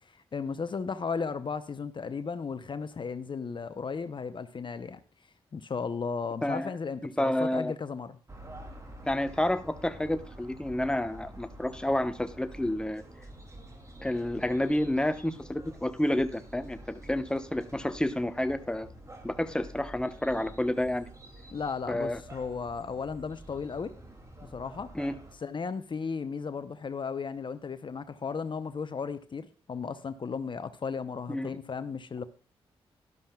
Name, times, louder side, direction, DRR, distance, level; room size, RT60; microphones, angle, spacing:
voice 1, 0.3-5.0 5.5-8.2 21.5-23.9 24.5-24.9 25.4-32.2, left 5 dB, 45° left, 0.7 m, -35 dB
voice 2, 6.4-6.7 7.0-7.7 9.0-13.0 14.0-18.9 19.2-21.1 21.9-22.2 24.9-25.2 31.3-31.5, left 1 dB, 10° left, 0.9 m, -29 dB
sound 1, 8.3-25.3, right 1 dB, 30° right, 2.6 m, -48 dB
12.5 x 12.0 x 2.3 m
supercardioid pair, 45°, 11 cm